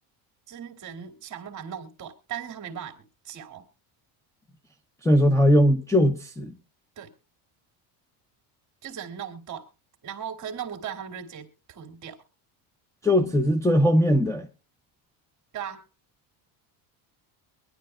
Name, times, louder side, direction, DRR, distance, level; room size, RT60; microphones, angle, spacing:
voice 1, 0.5-3.6 7.0-7.1 8.8-9.7 10.0-12.2 15.5-15.8, right 8 dB, 40° right, 2.4 m, -38 dB
voice 2, 5.0-6.5 13.0-14.5, equal, 5° left, 0.8 m, -20 dB
23.0 x 11.0 x 2.3 m
cardioid pair, 140°, 45 cm